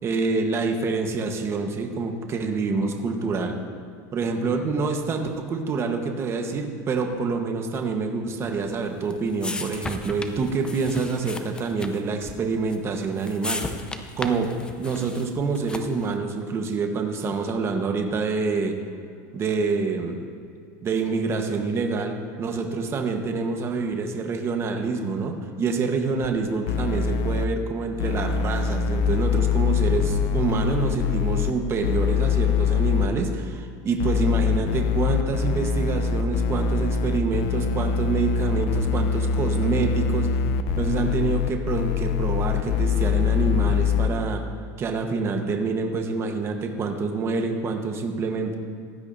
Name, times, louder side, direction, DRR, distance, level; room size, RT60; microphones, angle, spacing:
voice 1, 0.0-3.6 4.1-13.8 14.2-14.5 14.8-18.7 19.3-20.2 20.8-40.4 40.8-44.4 44.8-48.6, right 4 dB, 30° right, 4 dB, 1.2 m, -26 dB
sound 1, 8.6-16.1, left 2 dB, 10° left, 0.6 m, -36 dB
sound 2, 26.2-26.3 26.7-27.4 28.0-31.5 31.8-33.1 34.0-44.1, left 7 dB, 65° left, 0.7 m, -23 dB
16.0 x 12.0 x 2.7 m, 2.4 s
supercardioid pair, 135°, 9 cm